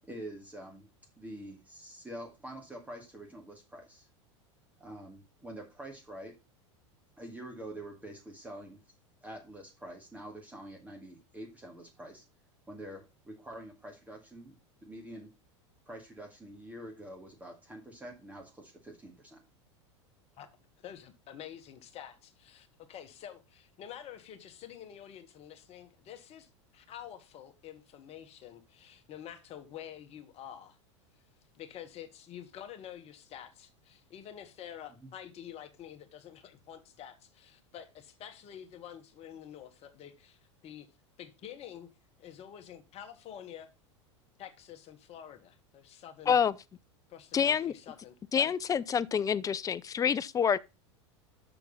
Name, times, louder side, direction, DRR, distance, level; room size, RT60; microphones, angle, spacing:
voice 1, 0.0-0.9 1.2-4.1 4.8-6.3 7.2-8.8 9.2-12.2 12.7-14.6 14.8-15.3 15.9-19.4 35.0-35.1, right 1 dB, 10° right, 2.2 m, -46 dB
voice 2, 20.8-30.8 31.5-40.4 40.6-40.9 41.2-41.9 42.2-43.7 44.4-46.4 47.1-48.5, left 10 dB, 40° left, 1.5 m, -48 dB
voice 3, 47.3-47.7 48.3-50.6, left 7 dB, 20° left, 0.5 m, -27 dB
6.8 x 6.3 x 5.4 m
hypercardioid pair, 95°, 16 cm